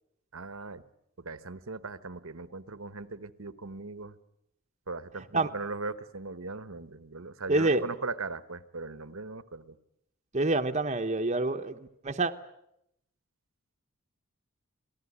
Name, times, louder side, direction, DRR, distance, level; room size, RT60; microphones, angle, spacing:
voice 1, 0.3-0.8 1.2-4.2 4.9-9.8, right 3 dB, 70° right, 1.1 m, -39 dB
voice 2, 7.5-7.8 10.3-12.3, right 2 dB, 30° right, 1.0 m, -27 dB
27.5 x 18.0 x 9.7 m
head